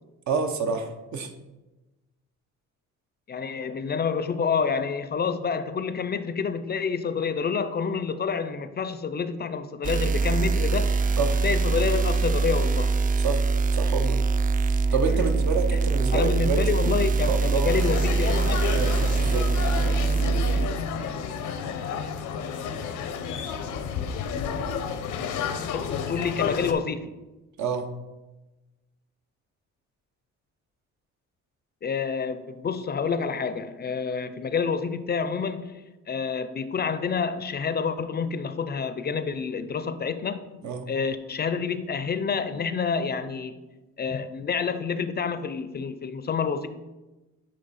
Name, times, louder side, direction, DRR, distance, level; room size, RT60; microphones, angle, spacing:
voice 1, 0.3-1.3 11.2-11.4 13.2-13.4 13.7-14.2 14.6-16.9 17.3-17.8 18.7-19.5 27.6-27.9 40.6-40.9, right 5 dB, 70° right, 6 dB, 0.9 m, -28 dB
voice 2, 3.3-11.0 11.4-12.9 15.7-15.8 16.1-18.6 25.7-27.1 31.8-40.5 40.9-43.6 44.0-46.7, left 5 dB, 35° left, 11 dB, 0.4 m, -28 dB
sound 1, 9.8-20.7, right 4 dB, 30° right, 0.4 m, -23 dB
sound 2, 17.7-26.7, left 6 dB, 90° left, 0.7 m, -31 dB
9.4 x 3.1 x 4.1 m, 1.1 s
cardioid pair, 90°, 30 cm